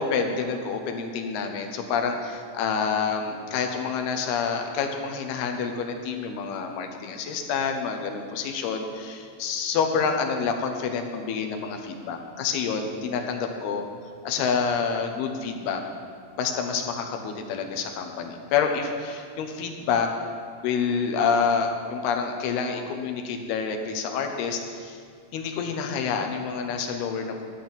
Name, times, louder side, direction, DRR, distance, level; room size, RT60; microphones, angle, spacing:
voice 1, 0.0-13.9 14.2-15.8 16.4-20.1 20.6-25.0 25.3-27.4, left 6 dB, 75° left, 4 dB, 2.8 m, -28 dB
13.5 x 6.1 x 8.7 m, 2.1 s
omnidirectional pair, 4.8 m